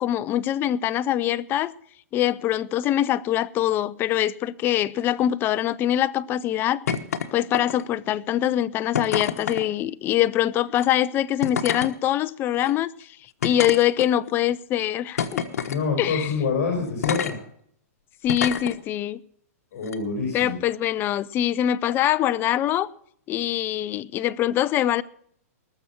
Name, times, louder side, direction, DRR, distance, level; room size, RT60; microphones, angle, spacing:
voice 1, 0.0-1.7 2.1-6.8 7.3-13.1 13.4-15.4 16.0-16.3 18.2-19.2 20.3-22.9 23.3-25.0, left 12 dB, 25° left, 0.5 m, -23 dB
sound 1, 6.9-7.3 7.5-8.0 8.9-9.6 10.7-10.9 11.4-11.9 12.6-12.7 13.4-14.3 15.2-15.8 17.0-17.3 18.3-18.7 19.8-20.0, left 7 dB, 80° left, 1.3 m, -27 dB
voice 2, 15.7-17.4 19.7-20.6, left 4 dB, 55° left, 5.0 m, -26 dB
20.0 x 6.9 x 5.9 m
hypercardioid pair, 145°, 8 cm